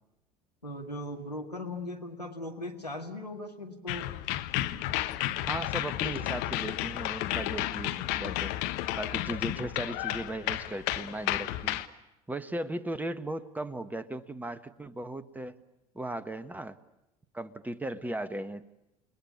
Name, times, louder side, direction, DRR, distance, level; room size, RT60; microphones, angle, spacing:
voice 1, 0.6-4.1, left 1 dB, 90° left, 2 dB, 2.0 m, -38 dB
sound 1, 3.9-11.9, left 15 dB, 55° left, 1.3 m, -32 dB
voice 2, 5.4-8.5 9.0-11.8 12.3-15.6 15.9-16.8 17.3-18.6, right 1 dB, 10° right, 14 dB, 1.4 m, -37 dB
29.5 x 20.5 x 8.5 m, 0.90 s
figure-of-eight pair, 65°, 20 cm